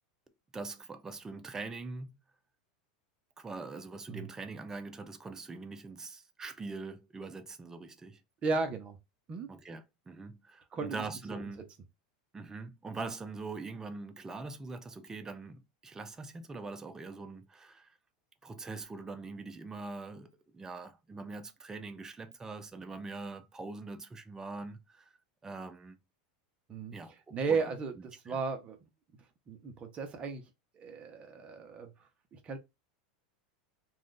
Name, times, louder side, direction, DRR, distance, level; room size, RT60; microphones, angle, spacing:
voice 1, 0.5-2.2 3.4-8.2 9.5-11.6 12.3-18.0 18.4-25.2 25.4-26.0 26.9-27.7 28.3-28.4, right 3 dB, 15° right, 0.4 m, -43 dB
voice 2, 8.4-9.0 9.3-9.5 10.7-11.0 11.3-11.4 26.7-28.9 29.5-30.4 30.7-31.9 32.3-32.6, right 4 dB, 30° right, 0.8 m, -35 dB
2.5 x 2.4 x 3.7 m
hypercardioid pair, 115°, 4 cm